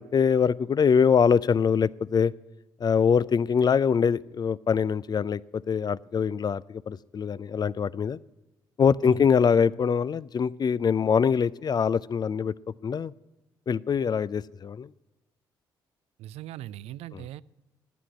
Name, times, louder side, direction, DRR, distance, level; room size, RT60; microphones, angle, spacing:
voice 1, 0.1-2.3 2.8-5.4 5.7-8.2 8.8-12.5 12.8-13.1 13.7-14.9 17.1-17.2, left 6 dB, 40° left, 20 dB, 0.4 m, -23 dB
voice 2, 16.2-17.4, right 13 dB, 70° right, 20 dB, 0.4 m, -40 dB
11.0 x 8.4 x 8.8 m, 1.1 s
hypercardioid pair, 50°, 11 cm